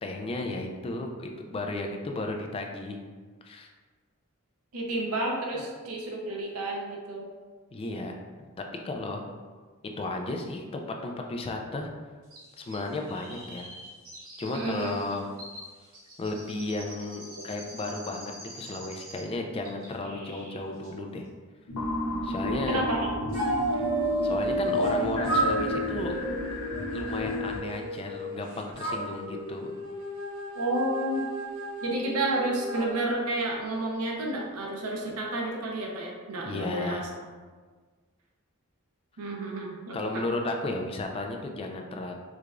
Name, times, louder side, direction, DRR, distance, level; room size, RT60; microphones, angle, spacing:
voice 1, 0.0-3.0 3.4-3.7 7.7-8.5 8.8-9.3 10.0-11.9 12.6-13.7 14.4-15.3 16.2-21.3 22.2-22.8 23.7-23.9 24.2-26.2 26.9-29.7 36.4-37.1 39.9-42.1, left 2 dB, 25° left, 2 dB, 0.3 m, -34 dB
voice 2, 4.7-7.2 14.5-15.0 22.7-23.1 30.5-31.3 31.8-37.1 39.2-40.2, right 1 dB, 90° right, 0 dB, 0.7 m, -30 dB
Chirp tweet, 12.3-19.4 19.6-20.6 20.8-20.9, equal, 40° right, 1.0 m, -46 dB
sound 1, 21.7-27.6, left 1 dB, 85° left, 0.5 m, -32 dB
sound 2, 23.3-25.0 25.2-28.4 28.8-32.8, right 1 dB, 70° right, 1.1 m, -32 dB
4.7 x 2.3 x 2.4 m, 1.5 s
head